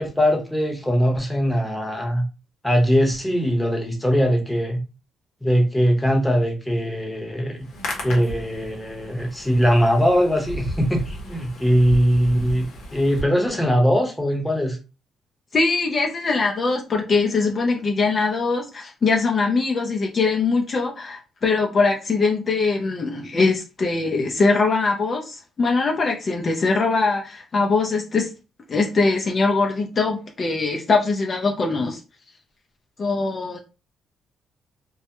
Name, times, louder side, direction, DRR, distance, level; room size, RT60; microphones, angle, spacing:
voice 1, 0.0-2.2 2.6-4.8 5.4-7.6 8.0-14.8, equal, 5° left, 1 dB, 0.8 m, -21 dB
Hands, 7.5-13.2, equal, 75° left, 0.8 m, -35 dB
voice 2, 15.5-28.3 28.7-32.0 33.0-33.6, left 4 dB, 40° left, 1 dB, 0.5 m, -22 dB
2.2 x 2.0 x 2.9 m, 0.31 s
cardioid pair, 90°, 0 cm